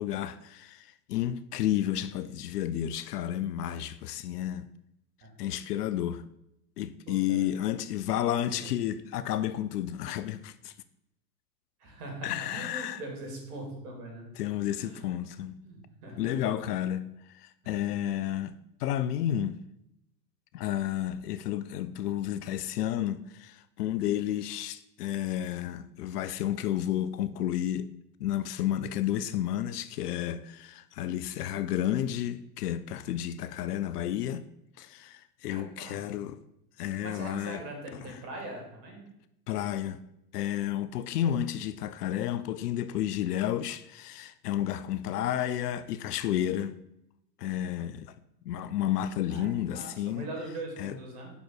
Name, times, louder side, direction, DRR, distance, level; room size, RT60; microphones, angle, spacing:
voice 1, 0.0-4.7 5.4-6.2 6.8-10.7 12.2-13.0 14.4-15.5 16.2-18.5 18.8-19.6 20.5-27.9 28.2-34.4 34.8-36.4 36.8-37.6 39.5-40.0 40.3-46.8 47.4-48.1 48.5-50.3 50.8-50.9, left 11 dB, 70° left, 0.5 m, -31 dB
voice 2, 7.1-7.5 8.3-8.7 11.8-14.3 14.8-15.0 15.6-16.4 35.5-36.2 37.0-39.0 42.1-42.5 49.3-51.3, right 2 dB, 65° right, 2.8 m, -42 dB
5.8 x 5.2 x 4.5 m
hypercardioid pair, 100°, 49 cm